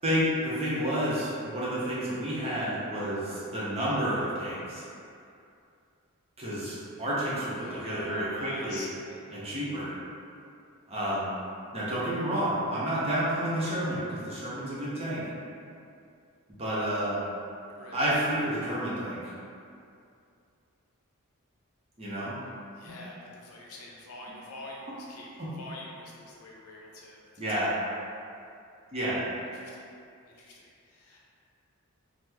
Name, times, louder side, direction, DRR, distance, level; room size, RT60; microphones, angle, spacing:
voice 1, 0.0-4.8 6.4-8.8 9.3-9.9 10.9-11.3 11.7-15.2 16.5-17.2 17.9-19.2 22.0-22.4 25.4-25.5 27.4-27.7 28.9-29.2, equal, 25° right, -9 dB, 0.6 m, -30 dB
voice 2, 7.6-9.2 17.7-18.3 22.7-27.2 27.5-28.0 29.5-29.9 30.3-31.2, left 2 dB, 75° left, -4 dB, 0.6 m, -45 dB
3.0 x 2.0 x 3.4 m, 2.5 s
head